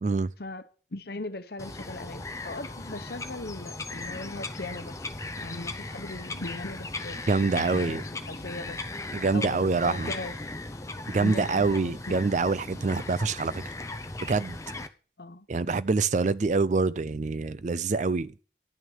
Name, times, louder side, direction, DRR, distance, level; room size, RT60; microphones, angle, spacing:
voice 1, 0.4-5.1 5.4-8.9 9.3-10.3 11.1-12.2 15.2-15.5, left 2 dB, 60° left, 1.0 m, -39 dB
Bird vocalization bird call bird song, 1.6-14.9, left 2 dB, 15° left, 0.6 m, -37 dB
voice 2, 7.3-8.0 9.1-10.1 11.1-13.6 14.2-14.6 15.5-18.3, right 4 dB, 40° right, 0.4 m, -26 dB
11.0 x 6.1 x 6.5 m
head